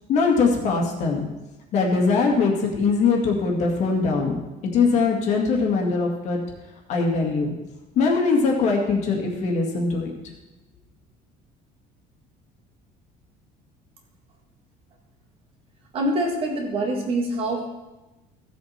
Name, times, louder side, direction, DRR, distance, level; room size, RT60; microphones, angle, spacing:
voice 1, 0.1-1.2 1.7-4.4 4.7-6.4 6.9-7.5 8.0-10.1, left 4 dB, 45° left, 1 dB, 2.0 m, -21 dB
voice 2, 15.9-17.7, right 1 dB, 35° right, 1 dB, 1.8 m, -25 dB
15.5 x 7.3 x 4.3 m, 1.1 s
cardioid pair, 180°, 17 cm